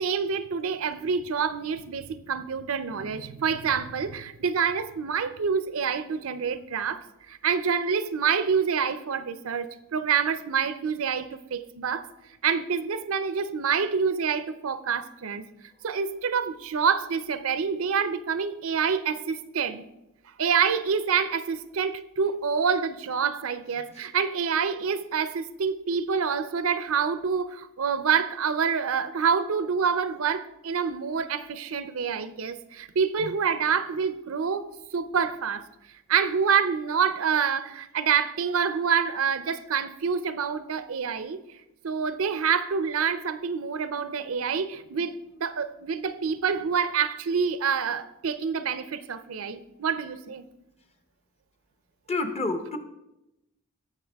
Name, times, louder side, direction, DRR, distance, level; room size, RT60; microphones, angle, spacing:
voice 1, 0.0-12.1 12.4-15.5 15.8-19.8 20.4-35.6 36.1-41.4 41.8-50.4, right 6 dB, 65° right, 0.5 m, -27 dB
voice 2, 52.1-52.8, left 3 dB, 30° left, 0.9 m, -28 dB
18.0 x 6.8 x 3.5 m
head